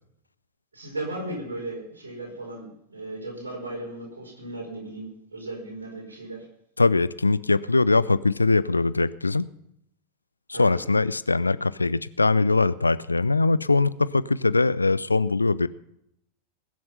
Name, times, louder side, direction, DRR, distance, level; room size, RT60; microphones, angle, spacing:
voice 1, 0.7-6.4 10.5-10.8, right 2 dB, 70° right, -1 dB, 4.8 m, -36 dB
voice 2, 6.8-9.5 10.5-15.7, left 3 dB, 80° left, 18 dB, 0.4 m, -22 dB
21.0 x 7.7 x 5.6 m, 0.76 s
figure-of-eight pair, 90°, 0 cm